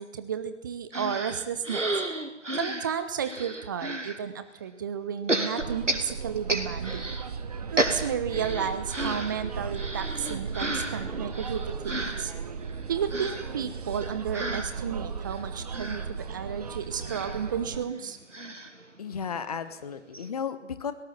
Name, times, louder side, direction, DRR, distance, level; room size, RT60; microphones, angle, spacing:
voice 1, 0.0-2.0 2.6-7.2 7.7-12.3 12.9-18.2, right 7 dB, 15° right, 11 dB, 0.9 m, -32 dB
sound 1, 0.9-4.2 5.3-7.3 7.5-19.5 19.8-19.9 20.1-20.3, right 1 dB, 85° right, 2.8 m, -33 dB
sound 2, 5.6-17.8, right 5 dB, 30° right, 1.2 m, -36 dB
voice 2, 19.0-20.9, left 7 dB, 30° left, 11 dB, 1.4 m, -34 dB
24.0 x 18.0 x 7.3 m, 0.84 s
figure-of-eight pair, 145°, 36 cm